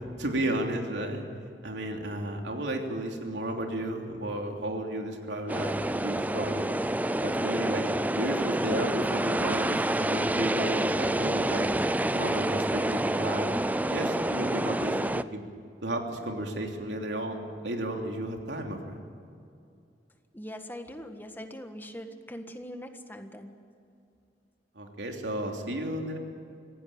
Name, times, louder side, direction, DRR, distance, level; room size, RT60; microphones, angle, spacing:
voice 1, 0.2-1.2 1.6-6.7 7.2-11.7 12.1-15.0 15.3-15.4 15.8-19.0 24.7-26.2, right 1 dB, 90° right, 2 dB, 3.2 m, -33 dB
sound 1, 5.5-15.2, right 1 dB, 10° right, 0.5 m, -28 dB
voice 2, 20.3-23.6, equal, 10° left, 6 dB, 1.6 m, -42 dB
26.0 x 16.5 x 8.7 m, 2.5 s
head